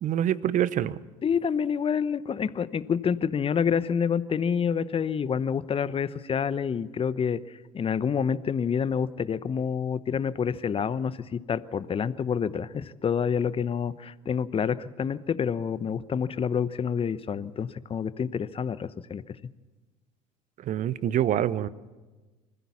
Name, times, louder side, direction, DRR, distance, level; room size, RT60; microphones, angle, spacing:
voice 1, 0.0-1.0 20.6-21.7, right 11 dB, 50° right, 18 dB, 1.0 m, -25 dB
voice 2, 1.2-7.4 7.7-19.2, left 7 dB, 30° left, 16 dB, 1.0 m, -28 dB
25.0 x 15.5 x 7.2 m, 1.2 s
hypercardioid pair, 60°, 18 cm